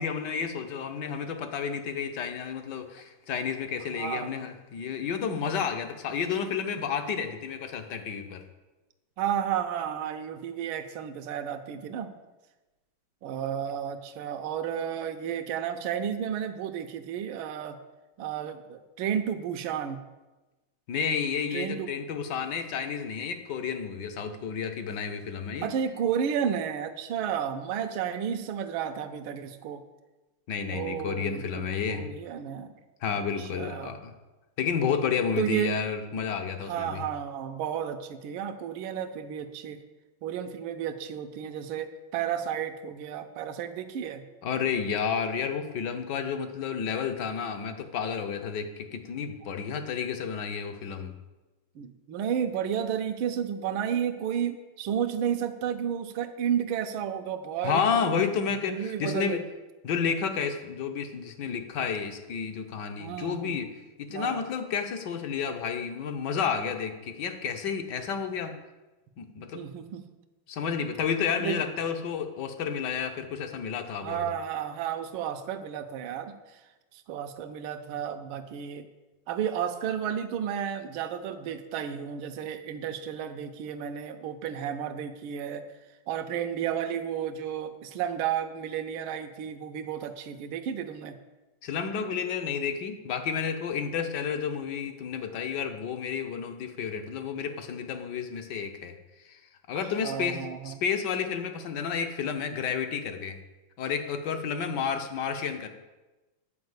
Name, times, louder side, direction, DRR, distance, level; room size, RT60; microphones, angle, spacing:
voice 1, 0.0-8.4 20.9-25.7 30.5-32.1 33.0-34.1 34.6-37.0 44.4-51.2 57.6-59.4 59.8-68.6 69.2-69.7 70.5-74.3 91.6-99.0 99.2-99.4 99.7-103.4 103.8-105.7, left 6 dB, 65° left, 7 dB, 1.2 m, -31 dB
voice 2, 3.9-4.4 9.2-12.1 13.2-17.8 18.2-20.0 21.5-21.9 25.6-29.8 30.7-32.7 33.1-33.9 35.4-35.7 36.7-39.8 40.2-44.2 51.7-58.3 58.7-59.4 63.0-63.6 64.1-64.4 69.5-70.0 71.4-71.6 74.0-76.6 76.9-78.9 79.3-85.6 86.1-91.2 100.0-100.7, right 8 dB, 75° right, 7 dB, 1.5 m, -32 dB
9.6 x 4.8 x 7.9 m, 1.1 s
omnidirectional pair, 2.4 m